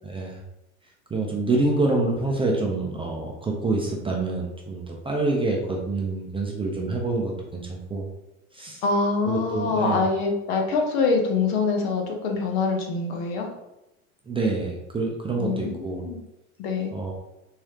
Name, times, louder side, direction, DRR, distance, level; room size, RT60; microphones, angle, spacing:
voice 1, 0.0-0.4 1.1-8.1 8.5-8.8 9.2-10.0 14.3-16.1 16.9-17.1, right 3 dB, 15° right, -1 dB, 0.5 m, -26 dB
voice 2, 8.8-13.5 15.4-16.2 16.6-16.9, left 4 dB, 55° left, 2 dB, 1.0 m, -25 dB
3.8 x 3.1 x 2.8 m, 0.90 s
hypercardioid pair, 95°, 43 cm